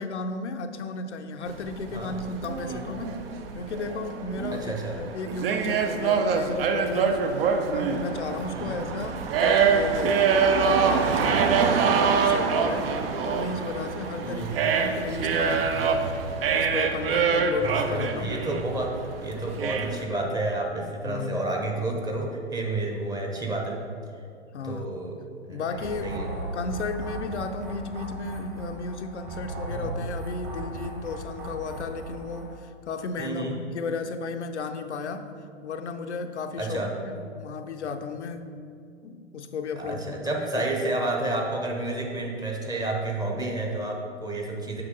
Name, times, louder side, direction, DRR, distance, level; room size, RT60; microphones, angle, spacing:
voice 1, 0.0-3.2 3.5-7.3 7.6-10.2 10.7-16.1 16.5-18.3 21.0-21.4 24.5-24.9 25.5-35.3 35.6-38.5 39.0-40.6, left 4 dB, 75° left, 7 dB, 0.6 m, -34 dB
sound 1, 1.5-20.0, right 5 dB, 55° right, 0.7 m, -25 dB
voice 2, 2.6-3.0 4.5-5.0 8.5-8.8 14.2-14.7 17.6-23.8 24.6-25.2 25.5-26.3 29.7-29.9 33.2-33.6 36.6-36.9 39.8-44.8, right 2 dB, 10° right, 0 dB, 0.8 m, -30 dB
sound 2, 25.7-32.6, right 1 dB, 25° right, 1.3 m, -37 dB
7.6 x 5.8 x 3.9 m, 2.4 s
figure-of-eight pair, 105°, 35 cm